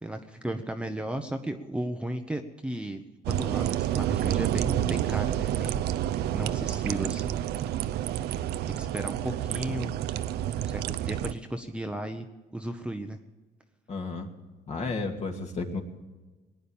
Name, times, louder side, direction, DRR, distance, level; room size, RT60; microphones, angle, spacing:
voice 1, 0.0-5.8 6.3-7.4 8.7-9.9 10.6-12.3 12.5-13.2, right 1 dB, 5° right, 5 dB, 0.9 m, -35 dB
sound 1, 3.3-11.3, right 12 dB, 75° right, 0.6 m, -29 dB
voice 2, 13.9-14.3 14.7-15.8, left 3 dB, 40° left, 3 dB, 2.5 m, -32 dB
20.0 x 10.0 x 7.2 m, 1.2 s
cardioid pair, 110°, 17 cm